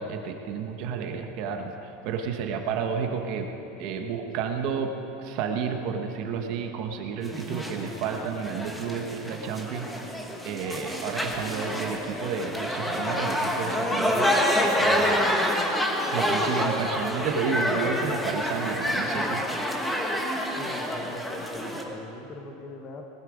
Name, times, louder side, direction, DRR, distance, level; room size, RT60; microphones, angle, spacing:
voice 1, 0.0-3.5 3.8-9.9 10.4-14.3 14.8-15.3 16.1-19.4, right 6 dB, 45° right, 4 dB, 1.1 m, -31 dB
sound 1, 7.2-21.8, equal, 5° left, 1.1 m, -27 dB
voice 2, 20.5-23.0, left 3 dB, 25° left, 4 dB, 1.1 m, -41 dB
19.0 x 11.5 x 5.1 m, 2.9 s
supercardioid pair, 175°, 0 cm